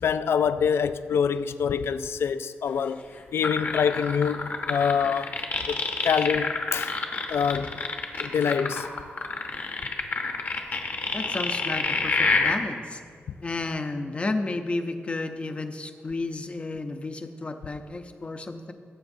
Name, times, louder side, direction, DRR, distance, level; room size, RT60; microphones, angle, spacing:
voice 1, 0.0-3.0 3.3-5.3 5.7-5.8 6.0-7.0 7.3-7.8 8.2-8.9, left 7 dB, 75° left, 0.3 m, -25 dB
sound 1, 3.4-12.6, left 3 dB, 45° left, 0.9 m, -27 dB
voice 2, 11.1-13.0 13.4-18.7, left 2 dB, 30° left, 0.6 m, -32 dB
18.0 x 7.9 x 2.6 m
wide cardioid pair, 150°, 4 cm